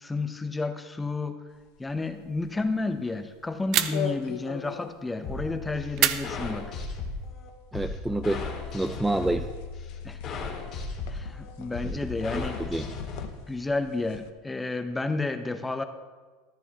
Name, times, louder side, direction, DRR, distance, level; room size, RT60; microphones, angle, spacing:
voice 1, 0.0-1.4 1.8-6.7 10.0-10.2 11.1-12.7 13.5-15.8, left 3 dB, 10° left, 8 dB, 0.8 m, -31 dB
sound 1, 1.5-14.3, left 9 dB, 70° left, 0.7 m, -42 dB
sound 2, 3.7-4.3 6.0-7.0, right 12 dB, 55° right, 0.6 m, -28 dB
sound 3, 5.2-13.2, left 4 dB, 45° left, 2.2 m, -36 dB
voice 2, 7.7-9.5 11.8-12.9, right 2 dB, 5° right, 7 dB, 0.4 m, -29 dB
14.0 x 12.0 x 3.0 m, 1.4 s
supercardioid pair, 115°, 0 cm